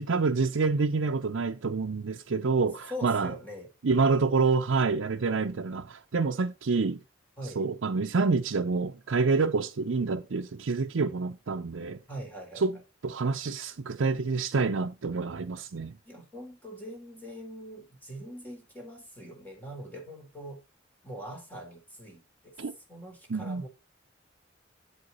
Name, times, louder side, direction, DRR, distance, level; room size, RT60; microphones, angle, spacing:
voice 1, 0.0-3.3 3.8-7.0 7.6-12.0 12.6-12.8 13.0-15.9 22.6-22.7 23.3-23.6, right 4 dB, 80° right, 0.6 m, -27 dB
voice 2, 2.9-3.7 7.4-7.6 12.1-12.6 16.0-20.6 21.0-22.6 22.9-23.7, equal, 10° left, 4.0 m, -42 dB
8.2 x 7.9 x 4.0 m
head